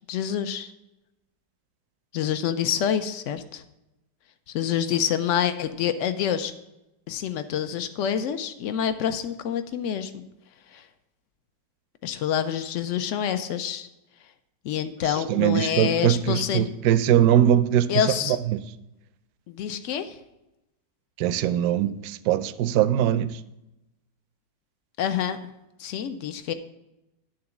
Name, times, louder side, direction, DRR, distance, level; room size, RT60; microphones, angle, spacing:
voice 1, 0.1-0.7 2.1-3.6 4.5-6.5 7.1-10.2 10.7-10.9 12.0-13.9 14.6-16.7 17.9-18.4 19.5-20.2 25.0-25.4 25.8-26.5, left 9 dB, 75° left, 0.7 m, -27 dB
voice 2, 15.3-17.9 18.3-18.6 21.2-23.3, right 11 dB, 70° right, 0.9 m, -21 dB
11.0 x 3.8 x 7.0 m
omnidirectional pair, 1.9 m